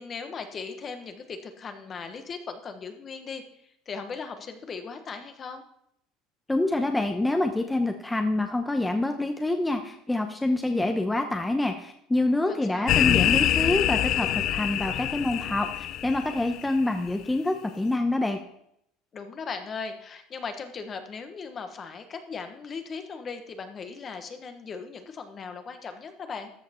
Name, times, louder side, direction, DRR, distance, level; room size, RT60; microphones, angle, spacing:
voice 1, 0.0-3.4 3.9-5.6 12.5-13.0 19.1-26.5, left 5 dB, 35° left, 7 dB, 1.4 m, -38 dB
voice 2, 6.5-18.4, left 2 dB, 10° left, 5 dB, 0.9 m, -26 dB
sound 1, 12.9-16.8, left 12 dB, 55° left, 0.4 m, -25 dB
13.5 x 5.8 x 4.5 m, 0.74 s
supercardioid pair, 95°, 0 cm